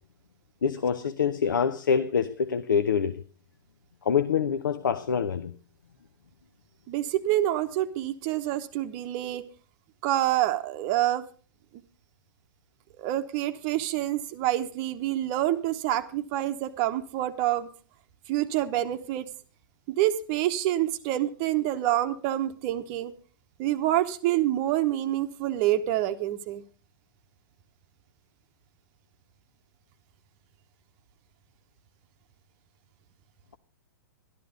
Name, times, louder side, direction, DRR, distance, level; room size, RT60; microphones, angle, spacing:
voice 1, 0.6-3.2 4.0-5.5, left 6 dB, 70° left, 0.8 m, -25 dB
voice 2, 6.9-9.4 10.0-11.2 13.0-17.7 18.3-19.3 19.9-23.1 23.6-26.6, right 13 dB, 35° right, 0.9 m, -27 dB
12.0 x 12.0 x 5.1 m
figure-of-eight pair, 110°, 11 cm